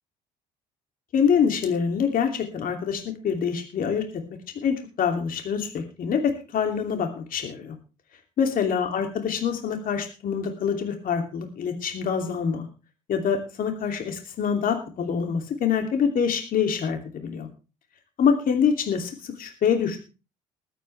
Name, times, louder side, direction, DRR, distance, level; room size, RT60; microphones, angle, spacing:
voice 1, 1.1-4.0 4.6-6.2 6.5-7.8 8.4-12.7 13.1-17.5 18.2-20.0, left 7 dB, 55° left, 4 dB, 2.9 m, -25 dB
21.0 x 9.0 x 3.4 m, 0.33 s
supercardioid pair, 70°, 17 cm